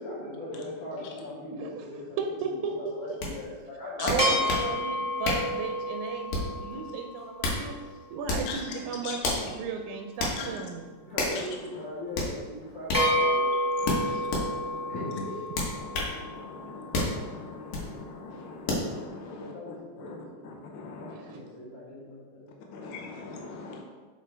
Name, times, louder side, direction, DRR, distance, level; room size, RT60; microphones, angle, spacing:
voice 1, 0.0-2.2 2.7-4.6 11.0-13.5 14.9-15.4 19.3-20.6 20.9-22.9, left 1 dB, 35° left, -9 dB, 1.4 m, -40 dB
voice 2, 2.2-3.2 4.0-7.7 8.1-10.9 13.5-13.7 14.0-14.2 21.1-21.4, right 5 dB, 80° right, 3 dB, 1.9 m, -35 dB
sound 1, 3.2-3.3 4.1-4.7 5.2-5.5 6.3-6.6 7.2-7.6 8.2-8.5 9.2-9.5 10.2-10.4 11.2-11.4 12.1-12.3 12.9-13.1 13.8-14.5 15.5-16.1 16.9-17.2 17.7-17.9 18.7-18.9, left 2 dB, 70° left, 2.4 m, -29 dB
sound 2, 4.2-7.9 12.9-17.3, equal, 15° left, 0.7 m, -30 dB
voice 3, 13.8-14.9 15.8-19.5 20.0-20.2 20.4-21.1 22.7-23.8, left 4 dB, 90° left, 0 dB, 1.1 m, -41 dB
7.4 x 4.4 x 3.3 m, 1.4 s
omnidirectional pair, 3.4 m